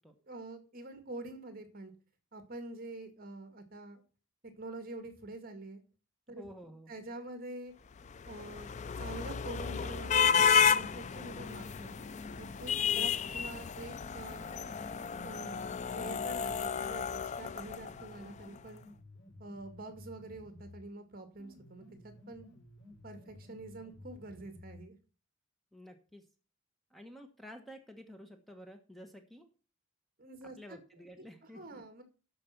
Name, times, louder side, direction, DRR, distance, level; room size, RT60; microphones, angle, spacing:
voice 1, 0.3-1.9 2.3-4.0 4.6-5.8 6.3-6.5 6.9-7.7 8.3-8.7 9.0-11.9 12.4-14.5 15.2-15.6 15.9-18.8 19.4-22.5 23.0-25.0 30.2-30.8 31.2-31.3 31.5-32.0, right 2 dB, 45° right, 8 dB, 2.0 m, -46 dB
voice 2, 6.4-6.9 12.9-13.1 25.7-26.3 26.9-29.5 30.6-31.8, equal, ahead, 5 dB, 1.2 m, -51 dB
sound 1, 8.0-18.3, left 7 dB, 35° left, 0.4 m, -32 dB
sound 2, 9.9-13.2 13.9-20.9 21.4-24.9, left 2 dB, 85° left, 5.4 m, -54 dB
12.5 x 5.3 x 5.8 m, 0.36 s
head